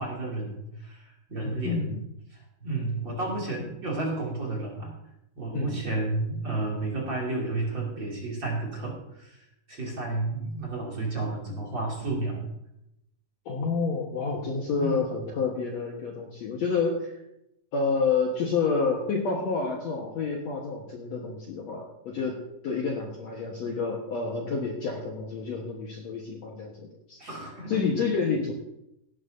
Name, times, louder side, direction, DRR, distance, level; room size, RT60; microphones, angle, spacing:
voice 1, 0.0-1.9 2.6-4.9 5.4-9.4 9.7-12.4 14.7-15.1 27.2-27.8, right 2 dB, 30° right, -2 dB, 2.9 m, -31 dB
voice 2, 1.4-2.0 5.5-5.8 13.5-17.1 17.7-26.7 27.1-27.2 27.7-28.5, left 4 dB, 60° left, -1 dB, 2.0 m, -29 dB
17.5 x 11.0 x 2.7 m, 0.84 s
omnidirectional pair, 4.5 m